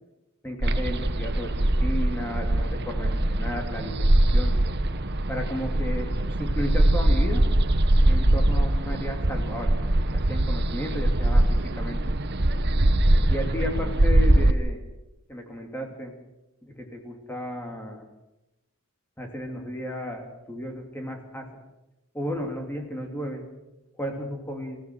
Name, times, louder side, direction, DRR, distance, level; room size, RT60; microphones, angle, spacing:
voice 1, 0.4-4.5 5.3-6.1 6.4-7.4 8.1-9.8 10.1-11.4 11.7-12.0 13.3-14.8 15.3-16.1 16.6-18.1 19.2-21.5 22.1-23.4 24.0-24.8, equal, 10° left, 2 dB, 2.9 m, -34 dB
sound 1, 0.6-14.5, right 1 dB, 50° right, 1.2 m, -22 dB
26.5 x 16.0 x 6.3 m, 0.97 s
head